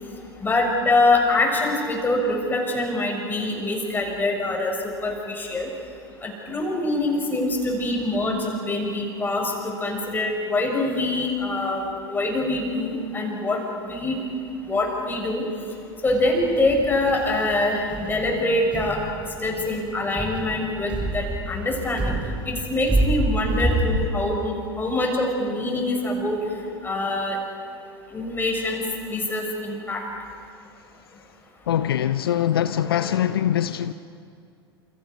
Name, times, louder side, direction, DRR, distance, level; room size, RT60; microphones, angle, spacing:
voice 1, 0.4-5.7 6.2-14.2 14.7-15.4 16.0-19.0 19.4-22.2 22.5-26.4 26.8-27.4 28.1-28.8 29.1-30.0, left 2 dB, 15° left, 1 dB, 6.9 m, -24 dB
sound 1, 16.1-24.1, right 1 dB, 10° right, 4.8 m, -28 dB
voice 2, 31.7-33.9, left 10 dB, 65° left, 13 dB, 0.7 m, -23 dB
30.0 x 28.5 x 5.6 m, 2.4 s
figure-of-eight pair, 85°, 13 cm